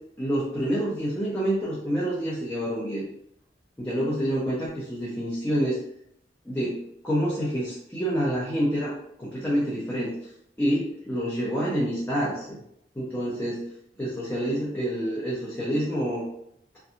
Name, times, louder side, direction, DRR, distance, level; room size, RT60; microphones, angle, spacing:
voice 1, 0.2-3.0 3.8-5.8 6.5-6.8 7.0-8.9 9.2-10.1 10.6-12.6 13.0-13.6 14.0-16.2, equal, 15° left, -8 dB, 0.6 m, -27 dB
2.7 x 2.2 x 2.5 m, 0.72 s
head